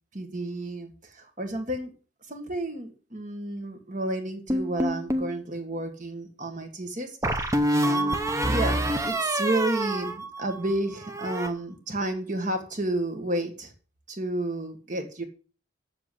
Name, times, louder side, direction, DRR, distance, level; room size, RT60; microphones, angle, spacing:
voice 1, 0.1-1.9 2.3-7.6 7.8-8.2 8.5-13.7 14.1-15.2, right 1 dB, 40° right, 5 dB, 1.8 m, -31 dB
sound 1, 4.5-5.3 7.2-10.7 11.0-11.5, right 1 dB, 15° right, 0.8 m, -26 dB
7.6 x 7.5 x 8.0 m, 0.37 s
head